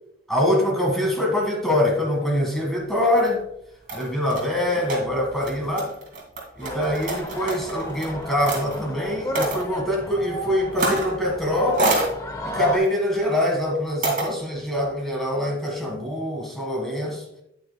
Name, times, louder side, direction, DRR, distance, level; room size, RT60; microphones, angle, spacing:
voice 1, 0.3-3.4 3.9-5.9 6.6-12.1 12.4-17.2, left 1 dB, ahead, -1 dB, 1.7 m, -24 dB
sound 1, 2.9-3.3 3.9-8.8 9.3-9.6 10.7-11.2 11.4-12.1 12.8-13.1 14.0-14.3, right 2 dB, 45° right, 2.2 m, -28 dB
sound 2, 6.6-12.8, equal, 20° left, 0.8 m, -33 dB
9.1 x 8.8 x 2.2 m, 0.79 s
head